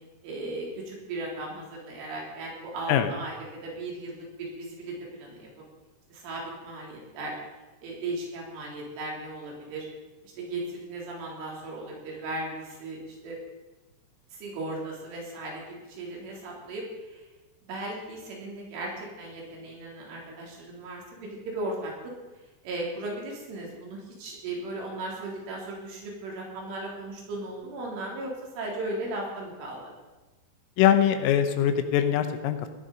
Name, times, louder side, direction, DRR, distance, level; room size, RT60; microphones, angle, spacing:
voice 1, 0.2-5.5 6.1-7.4 7.8-9.9 10.2-13.4 14.3-17.2 17.7-22.1 22.6-29.8, right 2 dB, 75° right, -2 dB, 6.0 m, -36 dB
voice 2, 30.8-32.7, left 10 dB, 85° left, 9 dB, 3.7 m, -22 dB
18.0 x 11.0 x 5.4 m, 1.2 s
omnidirectional pair, 5.6 m